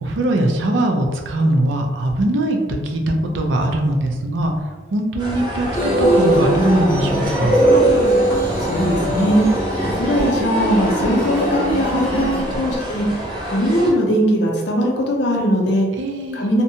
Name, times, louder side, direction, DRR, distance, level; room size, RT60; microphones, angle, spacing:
voice 1, 0.0-4.5 4.9-7.7 12.1-12.6 16.0-16.4, right 1 dB, 85° right, 3 dB, 0.4 m, -21 dB
sound 1, 3.4-4.6 5.2-6.6 7.1-7.4 7.9-10.0 10.3-10.9, equal, 65° right, 1.3 m, -40 dB
sound 2, 5.2-13.9, right 1 dB, 25° right, 0.5 m, -27 dB
sound 3, 5.7-12.4, right 1 dB, 40° right, 0.9 m, -20 dB
voice 2, 8.6-9.4 9.8-15.9 16.3-16.6, equal, 65° left, 0 dB, 0.6 m, -20 dB
2.7 x 2.1 x 2.7 m, 1.3 s
head